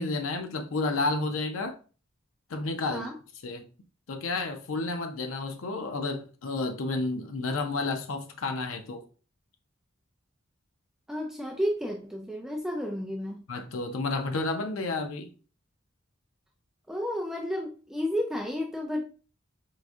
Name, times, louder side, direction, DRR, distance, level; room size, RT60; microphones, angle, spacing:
voice 1, 0.0-1.8 2.5-3.1 3.4-3.7 4.1-9.0 13.5-15.3, left 3 dB, 90° left, 0.5 m, -31 dB
voice 2, 11.1-13.4 16.9-19.0, equal, ahead, 0.3 m, -31 dB
4.7 x 2.5 x 2.3 m
head